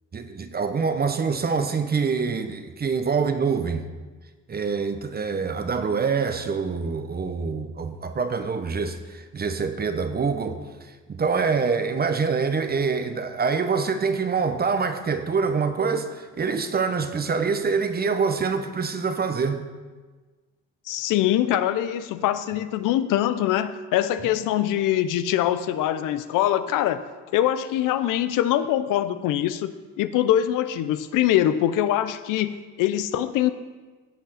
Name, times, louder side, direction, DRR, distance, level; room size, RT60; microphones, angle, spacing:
voice 1, 0.1-3.8 4.5-19.6, right 5 dB, 30° right, 0.9 m, -25 dB
voice 2, 20.9-33.5, left 12 dB, 75° left, 0.6 m, -23 dB
16.0 x 5.6 x 4.2 m
supercardioid pair, 80°, 32 cm